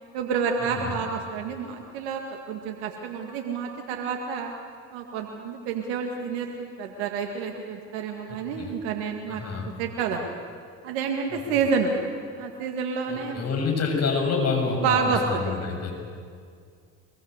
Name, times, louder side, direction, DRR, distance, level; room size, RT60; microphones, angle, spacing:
voice 1, 0.1-4.5 4.9-9.4 9.8-10.4 10.8-11.9 12.3-13.4 14.8-15.5, right 6 dB, 85° right, 2 dB, 2.0 m, -29 dB
voice 2, 8.3-8.7 9.3-9.7 11.3-11.4 13.1-15.9, left 4 dB, 45° left, 2 dB, 7.1 m, -27 dB
23.5 x 21.5 x 8.1 m, 2.2 s
supercardioid pair, 70°, 35 cm